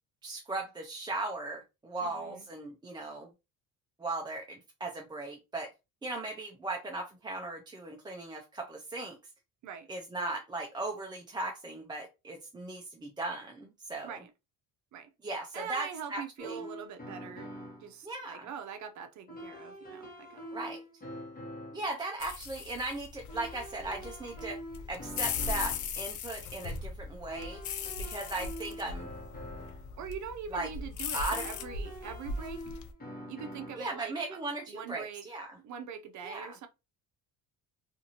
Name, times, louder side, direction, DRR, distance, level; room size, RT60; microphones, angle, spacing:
voice 1, 0.2-3.3 4.0-5.7 6.0-9.2 9.9-14.2 15.2-16.6 18.0-18.5 20.5-20.8 21.7-24.6 24.9-27.6 28.1-29.1 30.5-30.7 31.1-31.5 33.8-35.5 36.2-36.5, right 2 dB, 10° right, 0.4 m, -37 dB
voice 2, 2.0-2.5 9.6-9.9 14.0-14.3 14.9-15.1 15.5-17.5 17.8-20.7 30.0-32.7 33.3-34.4 34.7-35.3 35.6-36.7, right 7 dB, 50° right, 0.6 m, -43 dB
sound 1, 16.4-17.9 19.3-21.9 23.3-26.0 27.3-29.9 31.3-33.9, equal, 25° left, 1.1 m, -45 dB
sound 2, 22.2-32.9, left 5 dB, 55° left, 0.6 m, -38 dB
2.6 x 2.5 x 2.8 m
cardioid pair, 120°, 37 cm